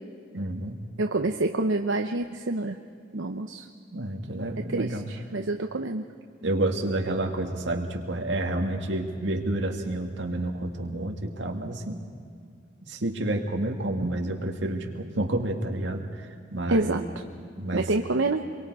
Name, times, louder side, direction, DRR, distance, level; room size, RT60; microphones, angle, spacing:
voice 1, 0.3-0.8 3.9-5.1 6.4-12.0 12.9-16.0 16.5-17.1 17.6-17.9, right 1 dB, 65° right, 2 dB, 2.3 m, -29 dB
voice 2, 1.0-2.8 3.1-3.6 4.7-6.0 14.0-14.1 16.7-17.0 17.7-18.4, right 2 dB, 85° right, 5 dB, 0.9 m, -27 dB
28.0 x 23.0 x 4.9 m, 2.3 s
head